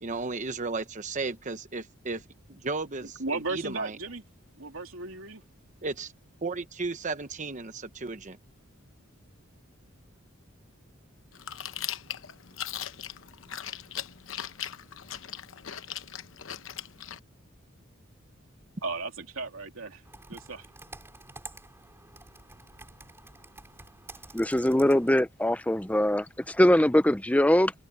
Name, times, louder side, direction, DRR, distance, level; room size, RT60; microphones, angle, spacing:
voice 1, 0.0-3.2 3.5-4.0 5.8-6.1 6.4-8.4, right 3 dB, 35° right, 1.0 m, -34 dB
voice 2, 3.2-4.2 4.6-5.4 18.8-20.0 20.3-20.7, right 3 dB, 75° right, 3.0 m, -35 dB
Chewing mastication, 11.3-17.2, left 10 dB, 70° left, 0.9 m, -39 dB
Computer keyboard, 20.0-25.2, right 2 dB, 15° right, 3.1 m, -49 dB
voice 3, 24.3-27.7, left 1 dB, 5° left, 0.7 m, -22 dB
head